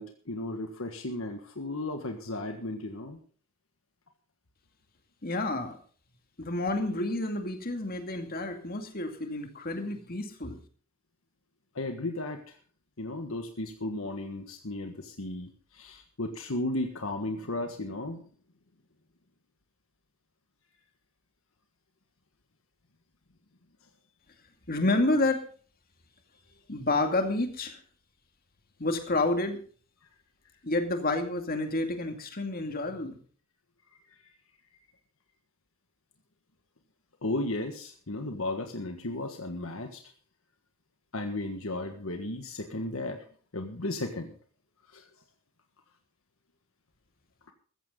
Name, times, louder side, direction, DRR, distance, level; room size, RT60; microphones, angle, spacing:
voice 1, 0.0-3.2 11.7-12.4 13.0-18.2 37.2-40.0 41.1-43.2 43.5-44.3 44.9-45.0, left 2 dB, 70° left, 5 dB, 1.6 m, -34 dB
voice 2, 5.2-5.8 6.4-10.6 24.7-25.4 26.7-27.8 28.8-29.6 30.6-33.2, left 2 dB, 45° left, 5 dB, 2.3 m, -29 dB
15.0 x 14.5 x 3.9 m, 0.42 s
head